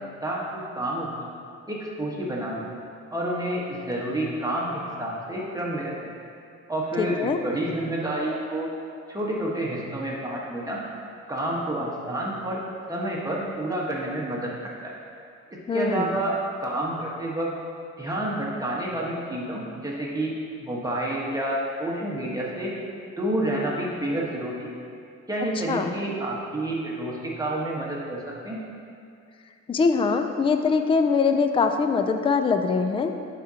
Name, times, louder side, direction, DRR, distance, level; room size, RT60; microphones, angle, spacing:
voice 1, 0.2-1.3 1.7-2.6 3.1-5.9 6.7-8.7 9.1-10.8 11.3-12.6 12.9-14.5 14.8-14.9 15.7-17.5 18.0-20.3 20.6-22.7 23.2-24.7 25.3-28.6, right 1 dB, 10° right, -4 dB, 1.3 m, -29 dB
voice 2, 7.0-7.4 15.7-16.2 25.7-25.9 29.7-33.1, left 5 dB, 20° left, 6 dB, 0.4 m, -23 dB
10.0 x 5.0 x 2.9 m, 2.4 s
cardioid pair, 90°, 30 cm